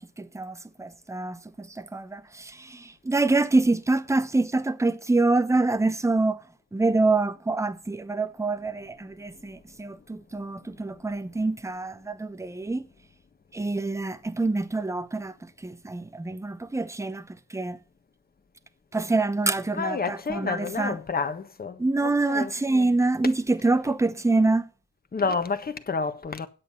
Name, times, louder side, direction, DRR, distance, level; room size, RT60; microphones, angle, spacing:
voice 1, 0.0-6.4 6.7-12.8 13.5-15.3 15.6-17.2 17.5-17.8 18.9-20.9 21.8-24.7, right 2 dB, 10° right, 0.9 m, -26 dB
voice 2, 19.7-22.9 25.1-26.5, left 4 dB, 30° left, 1.4 m, -30 dB
9.6 x 8.2 x 5.6 m
cardioid pair, 90°, 30 cm